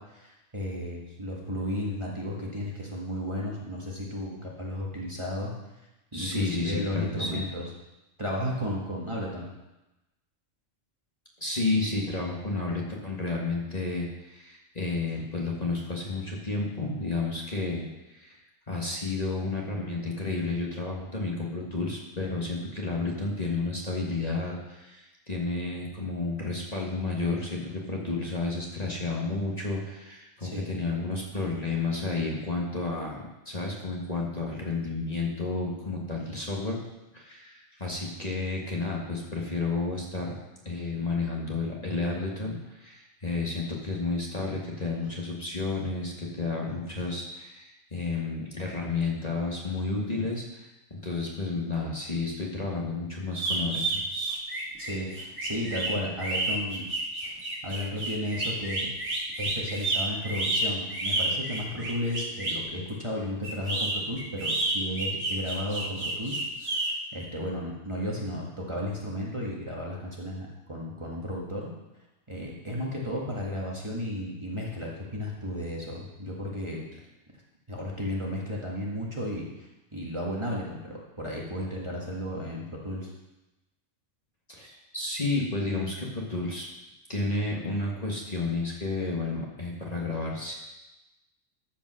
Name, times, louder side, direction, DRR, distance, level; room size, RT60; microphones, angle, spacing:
voice 1, 0.0-5.5 6.1-7.7 8.2-9.5 30.4-30.7 54.8-56.9 57.2-58.9 59.4-71.7 72.3-76.8 77.7-83.1, left 1 dB, 20° right, -3 dB, 1.8 m, -34 dB
voice 2, 6.1-7.4 11.4-18.4 18.7-36.8 37.1-40.4 40.7-53.8 84.5-86.7 87.1-90.5, left 3 dB, 30° left, -3 dB, 1.7 m, -31 dB
sound 1, 53.3-62.6 63.4-66.9, right 2 dB, 90° right, 3.1 m, -30 dB
13.5 x 5.3 x 6.3 m, 1.0 s
omnidirectional pair, 1.4 m